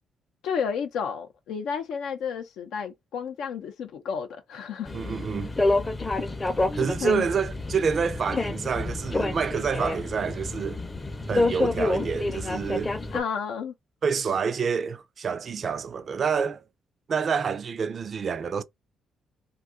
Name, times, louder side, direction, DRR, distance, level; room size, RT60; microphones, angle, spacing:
voice 1, 0.4-4.9 7.0-7.3 13.1-13.7, left 6 dB, 80° left, 0.5 m, -31 dB
sound 1, 4.9-13.2, left 2 dB, 25° left, 0.5 m, -28 dB
voice 2, 4.9-5.5 6.8-10.8 11.3-12.9 14.0-16.6 17.1-18.6, right 6 dB, 50° right, 0.4 m, -28 dB
2.7 x 2.3 x 3.6 m
cardioid pair, 90°, 0 cm